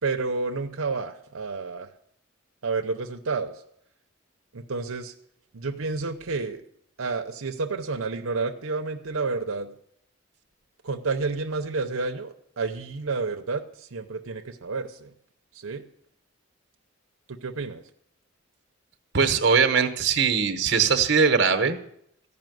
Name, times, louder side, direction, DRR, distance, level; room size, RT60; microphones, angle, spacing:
voice 1, 0.0-1.9 2.6-3.5 4.5-5.1 5.5-6.6 7.0-9.7 10.8-15.1 15.5-15.8 17.3-17.8, right 4 dB, 85° right, 4 dB, 0.8 m, -30 dB
voice 2, 19.1-21.8, right 5 dB, 55° right, 7 dB, 1.1 m, -21 dB
15.0 x 5.6 x 9.2 m, 0.72 s
head